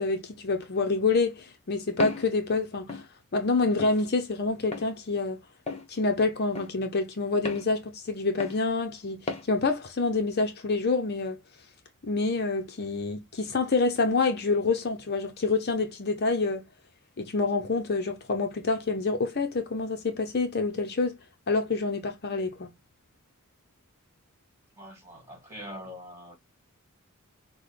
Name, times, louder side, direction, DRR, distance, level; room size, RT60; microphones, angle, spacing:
voice 1, 0.0-3.0 3.3-5.4 5.9-11.4 12.0-16.6 17.2-21.2 21.5-22.7, left 3 dB, 45° left, 0.7 m, -27 dB
Walk footsteps, 2.0-2.3 2.9-3.1 3.8-4.0 4.7-4.9 5.7-5.9 6.5-6.7 7.4-7.7 8.4-8.6 9.3-9.5, left 3 dB, 30° left, 1.1 m, -34 dB
voice 2, 24.8-26.4, equal, 10° right, 2.1 m, -43 dB
6.1 x 2.2 x 3.2 m
head